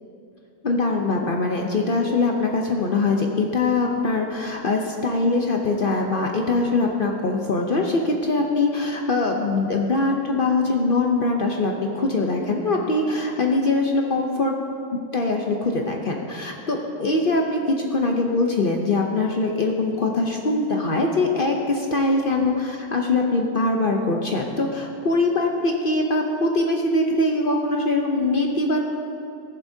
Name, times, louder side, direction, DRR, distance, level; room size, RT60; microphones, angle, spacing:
voice 1, 0.6-14.5 14.9-28.8, left 2 dB, 55° left, 1 dB, 0.6 m, -22 dB
15.0 x 10.5 x 2.7 m, 2.6 s
omnidirectional pair, 1.7 m